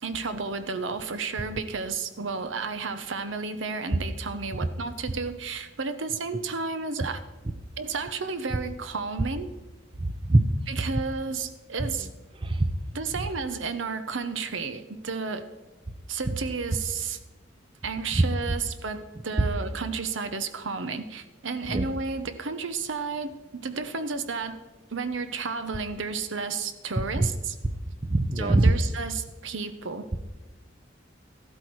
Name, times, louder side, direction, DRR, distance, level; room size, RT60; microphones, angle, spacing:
voice 1, 0.0-7.2 7.8-9.5 10.7-12.1 12.9-15.5 16.1-17.2 17.8-24.6 24.9-27.6 28.4-30.2, right 4 dB, 75° right, 11 dB, 0.9 m, -32 dB
voice 2, 10.0-10.4 12.4-12.7 18.1-18.2 21.7-21.9 27.2-27.3 27.6-27.7 28.0-28.7, right 2 dB, 25° right, 10 dB, 0.6 m, -22 dB
13.5 x 12.5 x 4.7 m, 1.1 s
head